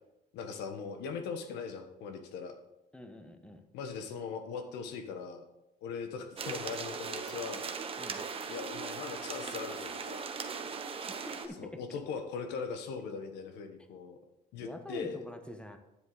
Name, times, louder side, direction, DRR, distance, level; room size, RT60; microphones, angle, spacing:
voice 1, 0.3-2.5 3.7-5.4 5.8-7.6 8.5-10.2 11.6-14.2 14.5-15.2, left 5 dB, 90° left, 7 dB, 1.3 m, -40 dB
voice 2, 2.9-3.6 8.0-8.2 11.2-11.7 14.6-15.8, left 1 dB, 5° left, 6 dB, 1.1 m, -45 dB
sound 1, 6.4-11.5, right 5 dB, 35° right, 1.0 m, -39 dB
9.8 x 7.7 x 4.0 m, 0.91 s
cardioid pair, 110°, 17 cm